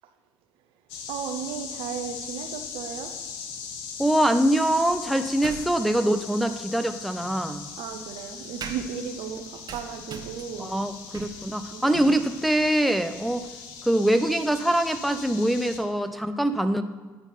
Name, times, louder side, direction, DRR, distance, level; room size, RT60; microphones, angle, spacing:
sound 1, 0.9-15.8, left 6 dB, 75° left, 0.8 m, -40 dB
voice 1, 1.1-3.1 7.8-10.7 11.7-12.0, right 7 dB, 65° right, 7 dB, 0.8 m, -35 dB
voice 2, 4.0-7.7 10.6-13.5 13.9-16.8, right 1 dB, ahead, 8 dB, 0.6 m, -24 dB
sound 2, 4.9-6.0 7.2-15.8, right 6 dB, 45° right, 1.1 m, -45 dB
8.9 x 4.4 x 5.6 m, 1.4 s
hypercardioid pair, 60°, 10 cm